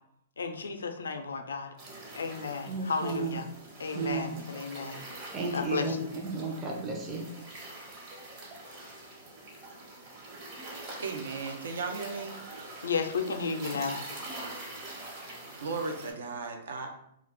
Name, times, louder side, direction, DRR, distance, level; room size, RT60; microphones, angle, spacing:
voice 1, 0.4-1.7 2.1-3.5 3.8-5.0 5.5-6.1 12.8-14.0, left 5 dB, 85° left, 6 dB, 0.4 m, -33 dB
sound 1, 1.8-16.1, right 2 dB, 40° right, 1.0 m, -44 dB
voice 2, 2.7-3.4 3.9-4.4 5.3-5.9 6.2-7.2, right 4 dB, 25° right, 0 dB, 0.5 m, -33 dB
voice 3, 11.0-12.4 15.6-16.9, right 4 dB, 80° right, 4 dB, 0.5 m, -35 dB
2.4 x 2.2 x 3.6 m, 0.76 s
hypercardioid pair, 130°, 0 cm